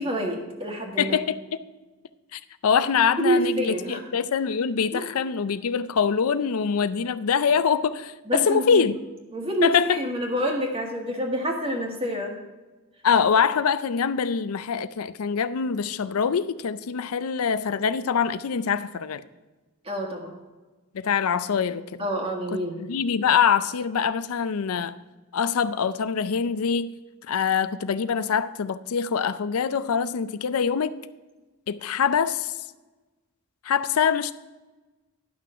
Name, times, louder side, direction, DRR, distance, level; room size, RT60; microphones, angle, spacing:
voice 1, 0.0-1.2 3.2-4.0 4.9-5.1 8.2-8.9 9.3-12.4 19.8-20.3 22.0-22.9, right 1 dB, 25° right, 1.8 m, -27 dB
voice 2, 1.0-1.4 2.3-9.0 9.6-10.0 13.0-19.2 20.9-22.0 22.5-22.6 22.9-25.0 25.3-26.9 27.3-30.9 31.7-32.5 33.6-34.3, left 6 dB, 85° left, 0.5 m, -24 dB
11.0 x 6.1 x 5.5 m
head